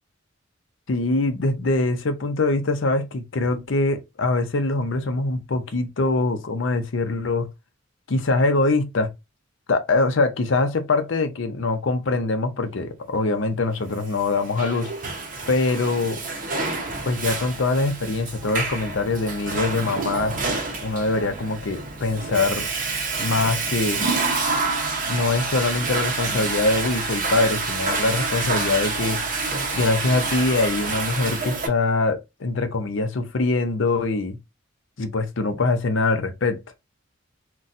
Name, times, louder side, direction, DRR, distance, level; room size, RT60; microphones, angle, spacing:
voice 1, 0.9-7.5 8.1-9.1 9.7-15.2 15.5-16.2 17.0-20.3 20.8-22.7 23.2-24.0 25.1-29.2 29.7-34.4 35.0-36.6, left 3 dB, 65° left, 0.6 m, -23 dB
Water / Toilet flush, 14.2-31.7, right 3 dB, 40° right, 0.7 m, -28 dB
4.0 x 2.2 x 2.5 m
head